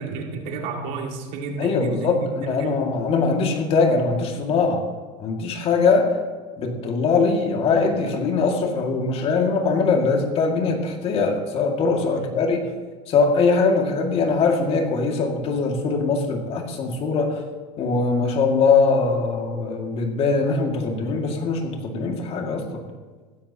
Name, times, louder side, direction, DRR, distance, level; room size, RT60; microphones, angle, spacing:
voice 1, 0.0-2.8 12.1-12.4, right 3 dB, 65° right, 2 dB, 2.1 m, -32 dB
voice 2, 1.6-4.9 5.2-6.2 6.6-12.7 13.1-17.4 17.8-22.8, left 4 dB, 45° left, 3 dB, 2.1 m, -22 dB
15.5 x 13.5 x 2.9 m, 1.4 s
supercardioid pair, 125°, 14 cm